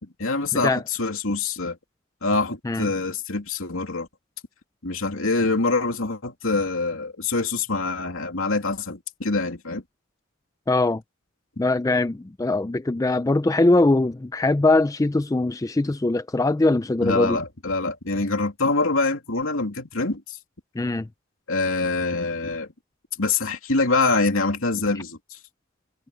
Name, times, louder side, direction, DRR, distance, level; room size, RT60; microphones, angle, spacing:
voice 1, 0.0-1.8 2.2-4.1 4.8-9.8 17.0-20.4 21.5-22.7 23.2-25.4, left 3 dB, 70° left, 2.9 m, -25 dB
voice 2, 10.7-11.0 11.6-17.4 20.8-21.1, left 2 dB, 15° left, 0.4 m, -21 dB
head